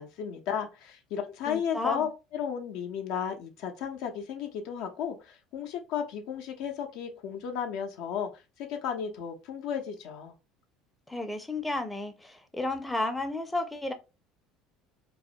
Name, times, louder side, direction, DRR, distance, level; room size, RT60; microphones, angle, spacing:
voice 1, 0.0-8.3 8.6-10.3, left 8 dB, 65° left, 0.5 m, -34 dB
voice 2, 1.5-2.1 11.1-13.9, left 2 dB, 10° left, 0.4 m, -32 dB
2.3 x 2.0 x 2.7 m
hypercardioid pair, 75°, 0 cm